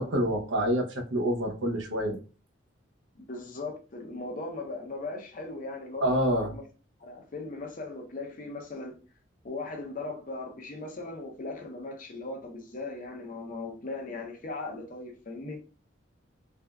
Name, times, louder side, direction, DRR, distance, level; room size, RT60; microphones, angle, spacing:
voice 1, 0.0-2.2 6.0-6.5, equal, 70° right, 0.7 m, -27 dB
voice 2, 3.2-6.1 6.3-6.6 7.0-8.9 9.4-15.6, left 3 dB, 45° left, 0.6 m, -38 dB
3.4 x 2.3 x 2.2 m
head